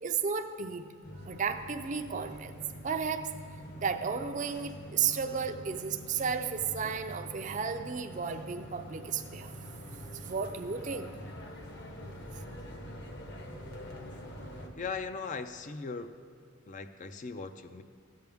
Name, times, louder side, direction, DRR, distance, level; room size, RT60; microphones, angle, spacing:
voice 1, 0.0-9.6 10.1-11.1, right 6 dB, 40° right, 8 dB, 0.5 m, -34 dB
sound 1, 1.0-14.7, equal, 55° left, 1.0 m, -45 dB
voice 2, 14.8-16.1 16.7-17.8, left 4 dB, 40° left, 9 dB, 0.4 m, -39 dB
14.0 x 9.1 x 3.5 m, 2.3 s
head